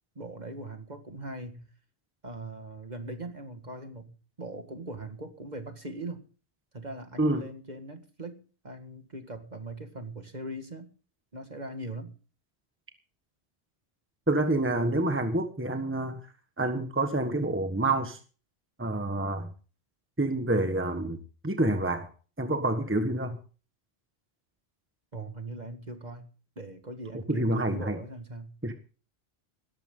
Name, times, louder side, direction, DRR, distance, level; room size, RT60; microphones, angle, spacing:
voice 1, 0.2-1.7 2.2-6.2 6.7-10.9 11.3-12.1 25.1-26.3 26.6-28.5, right 2 dB, 40° right, 2.0 m, -40 dB
voice 2, 14.3-16.2 16.6-18.2 18.8-19.5 20.2-22.1 22.4-23.4 27.3-28.0 28.6-28.7, right 2 dB, 10° right, 1.4 m, -27 dB
17.5 x 14.0 x 3.8 m
omnidirectional pair, 1.1 m